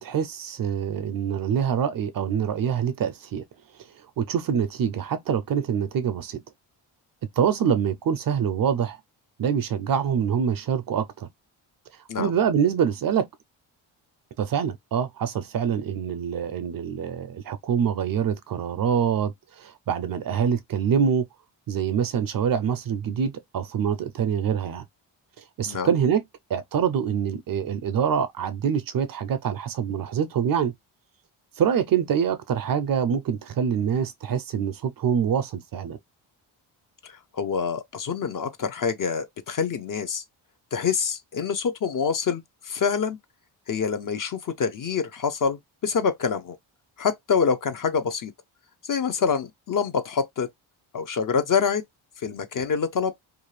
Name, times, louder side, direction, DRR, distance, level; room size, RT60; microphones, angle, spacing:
voice 1, 0.0-3.4 4.2-6.4 7.4-9.0 9.4-11.3 12.2-13.3 14.4-21.3 21.7-24.8 25.6-26.2 26.5-30.7 31.6-36.0, right 8 dB, 50° right, 0.5 m, -25 dB
voice 2, 37.0-40.2 40.7-43.2 43.7-46.6 47.0-48.3 48.8-50.5 50.9-51.8 52.2-53.1, left 6 dB, 45° left, 0.6 m, -26 dB
2.5 x 2.3 x 3.1 m
cardioid pair, 65°, 48 cm